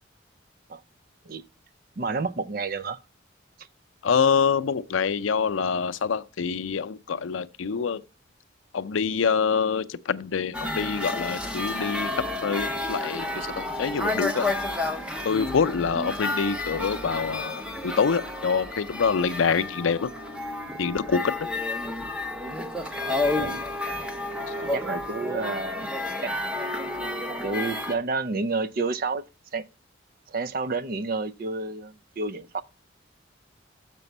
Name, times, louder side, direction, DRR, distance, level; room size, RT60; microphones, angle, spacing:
voice 1, 2.0-3.0 22.7-22.9 23.3-23.6 24.6-25.9 26.2-26.3 27.4-29.2 29.5-29.6 30.3-32.6, right 3 dB, 50° right, 0.5 m, -30 dB
voice 2, 4.0-8.0 8.7-14.5 15.2-20.1 20.8-21.5, left 6 dB, 85° left, 0.5 m, -26 dB
sound 1, 10.5-27.9, left 2 dB, 5° right, 0.8 m, -31 dB
6.9 x 6.0 x 5.3 m
head